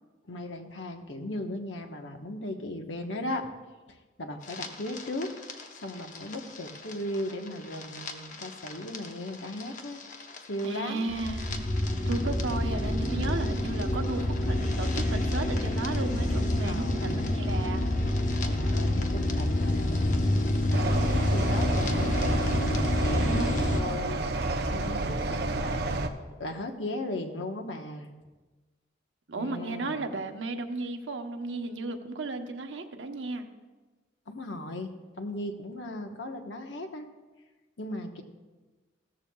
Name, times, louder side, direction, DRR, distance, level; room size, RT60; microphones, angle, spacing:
voice 1, 0.3-3.5 3.9-5.3 5.8-10.0 10.5-11.1 16.6-17.2 18.4-20.2 20.6-22.7 23.0-28.1 29.4-30.0 34.3-37.1 37.8-38.2, left 1 dB, 85° left, 4 dB, 1.2 m, -37 dB
sound 1, 4.4-23.8, left 1 dB, 45° left, 0.9 m, -28 dB
voice 2, 10.6-11.7 12.1-17.8 22.8-23.5 29.3-33.5, right 3 dB, 90° right, 5 dB, 1.0 m, -35 dB
sound 2, 20.7-26.1, right 2 dB, 60° right, 0.7 m, -30 dB
16.0 x 13.5 x 2.3 m, 1.3 s
head